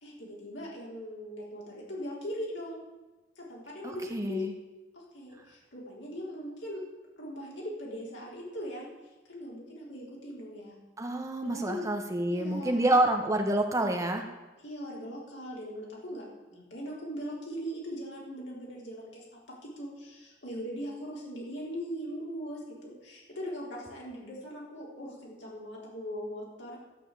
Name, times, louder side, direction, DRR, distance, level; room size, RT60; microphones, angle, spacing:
voice 1, 0.0-2.8 3.4-4.5 4.9-6.8 7.2-8.9 9.3-10.7 11.4-11.9 12.3-13.0 14.6-26.8, equal, 85° left, -4 dB, 4.0 m, -40 dB
voice 2, 3.8-4.5 11.0-14.2, right 1 dB, 20° right, 4 dB, 1.3 m, -28 dB
12.5 x 5.6 x 8.3 m, 1.1 s
head